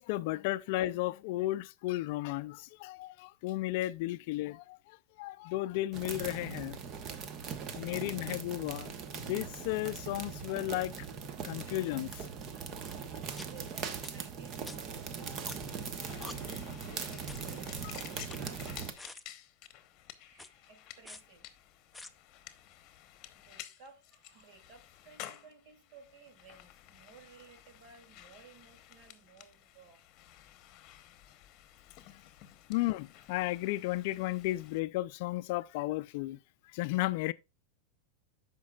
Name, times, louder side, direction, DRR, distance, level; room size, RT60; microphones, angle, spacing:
voice 1, 0.0-6.8 7.8-11.1 11.4-12.3 16.2-16.3 16.9-17.0 32.7-36.4 36.7-37.3, left 17 dB, 60° left, 0.4 m, -34 dB
sound 1, 5.9-18.9, right 6 dB, 35° right, 1.0 m, -40 dB
sound 2, 12.5-12.6 13.4-13.5 14.0-14.1 14.7-14.8 15.5-15.8 16.2-16.3 17.3-17.5 18.1-18.7 19.0-19.2 20.3-20.5 21.1-21.2 21.9-22.1, left 2 dB, 5° left, 0.5 m, -47 dB
voice 2, 13.4-16.4 16.8-18.7 20.2-21.5 23.3-30.0 31.7-32.7, right 5 dB, 55° right, 2.6 m, -58 dB
sound 3, 15.0-34.8, left 13 dB, 40° left, 0.9 m, -53 dB
14.0 x 5.2 x 2.3 m
supercardioid pair, 135°, 0 cm